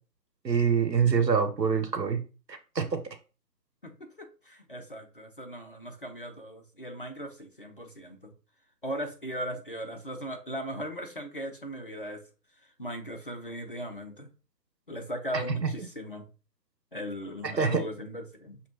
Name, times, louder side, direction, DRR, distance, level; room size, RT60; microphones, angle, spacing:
voice 1, 0.4-2.2 2.5-3.0 15.6-15.7 17.4-17.8, right 6 dB, 85° right, 1.0 m, -25 dB
voice 2, 3.8-8.3 8.8-12.2 12.8-14.3 14.9-16.3 16.9-18.6, equal, 35° left, 0.6 m, -38 dB
5.9 x 2.9 x 2.9 m
figure-of-eight pair, 150°, 50 cm